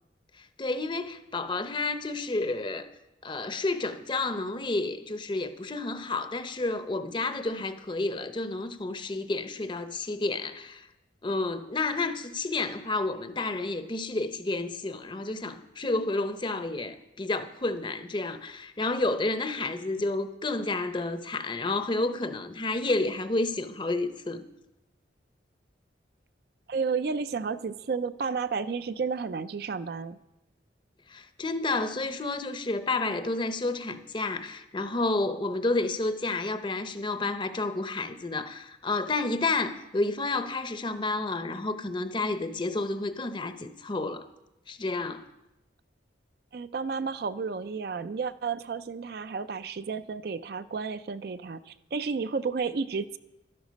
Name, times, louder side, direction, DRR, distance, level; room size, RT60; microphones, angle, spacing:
voice 1, 0.4-2.9 3.2-10.9 11.2-24.4 31.1-44.3 44.7-45.3, left 2 dB, 25° left, 0.7 m, -30 dB
voice 2, 26.7-30.2 46.5-53.2, right 5 dB, 55° right, 0.4 m, -32 dB
12.0 x 12.0 x 5.2 m
head